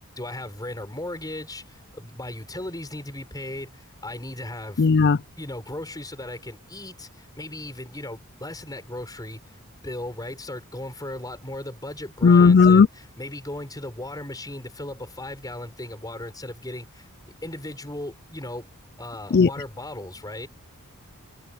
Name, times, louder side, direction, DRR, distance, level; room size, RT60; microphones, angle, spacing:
voice 1, 0.2-4.9 5.4-17.1 17.4-18.7 19.0-20.5, left 1 dB, 15° left, 6.7 m, -37 dB
voice 2, 4.8-5.2 12.2-12.9 19.3-19.5, left 5 dB, 50° left, 0.4 m, -14 dB
head